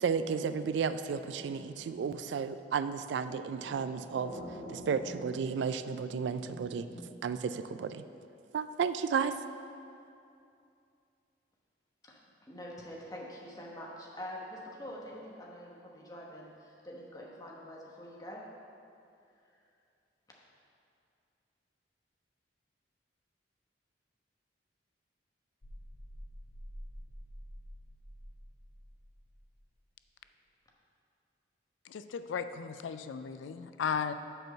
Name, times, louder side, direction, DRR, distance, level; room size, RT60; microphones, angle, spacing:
voice 1, 0.0-4.4 4.7-6.9 7.2-8.0 8.5-9.4, right 6 dB, 70° right, 12 dB, 0.3 m, -33 dB
sound 1, 1.0-7.0, equal, 40° left, 1.9 m, -49 dB
voice 2, 12.0-18.4, equal, 20° left, -3 dB, 1.0 m, -45 dB
sound 2, 25.6-29.6, equal, 60° left, 1.0 m, -48 dB
voice 3, 31.8-34.1, left 6 dB, 85° left, 11 dB, 0.3 m, -35 dB
7.9 x 4.5 x 6.4 m, 2.6 s
head